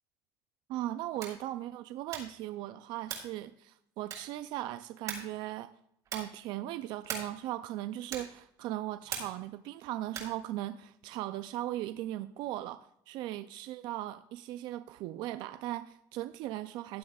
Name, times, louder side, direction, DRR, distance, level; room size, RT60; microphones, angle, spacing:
voice 1, 0.7-5.7 6.1-17.0, right 14 dB, 60° right, 12 dB, 0.4 m, -38 dB
sound 1, 1.1-1.5 2.1-2.4 3.0-3.4 4.1-4.5 5.1-5.4 6.0-6.4 7.0-7.4 8.1-8.4 9.1-9.5 10.1-10.4, right 6 dB, 40° right, 4.0 m, -41 dB
15.5 x 10.5 x 2.3 m, 0.76 s
cardioid pair, 150°, 9 cm